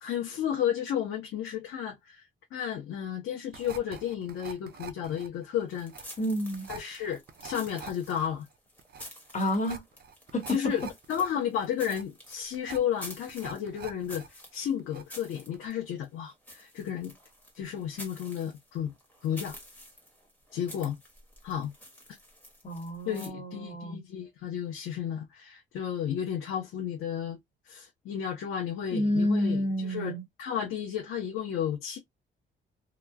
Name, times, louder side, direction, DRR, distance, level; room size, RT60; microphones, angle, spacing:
voice 1, 0.0-5.9 6.7-8.5 10.5-10.8 11.1-17.1 17.5-18.9 19.2-19.6 20.5-21.0 21.4-21.7 23.1-27.4 27.6-32.0, left 9 dB, 85° left, 0.8 m, -33 dB
sound 1, 3.5-14.3 14.6-15.3 15.5-15.7, right 6 dB, 50° right, 0.5 m, -46 dB
sound 2, 5.7-23.3, equal, 5° left, 1.3 m, -49 dB
voice 2, 6.2-6.7 9.3-9.8 10.3-10.4 22.6-24.0 28.9-30.2, equal, 35° left, 1.2 m, -29 dB
2.9 x 2.3 x 2.2 m
cardioid pair, 130°, 21 cm